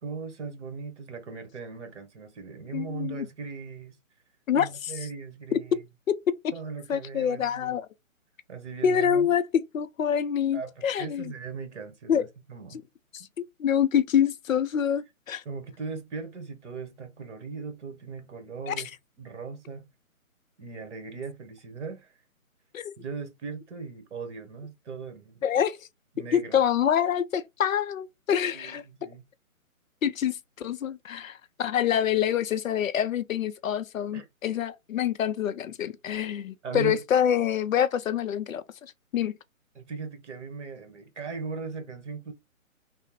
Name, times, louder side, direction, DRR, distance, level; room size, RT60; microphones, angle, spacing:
voice 1, 0.0-4.0 4.5-5.8 6.5-7.8 8.5-9.4 10.5-12.8 15.4-18.9 19.2-19.9 20.6-22.2 23.0-25.4 26.1-26.6 28.5-29.2 34.1-34.3 36.6-37.0 39.7-42.3, right 4 dB, 55° right, 1.2 m, -38 dB
voice 2, 2.7-3.3 4.5-4.9 6.9-7.9 8.8-9.4 9.7-11.3 12.1-12.3 12.7-12.8 13.1-13.2 13.6-15.4 18.7-18.8 22.7-22.9 25.4-25.8 26.3-28.8 30.0-39.3, left 9 dB, 70° left, 0.5 m, -26 dB
3.2 x 2.0 x 3.0 m
figure-of-eight pair, 145°, 42 cm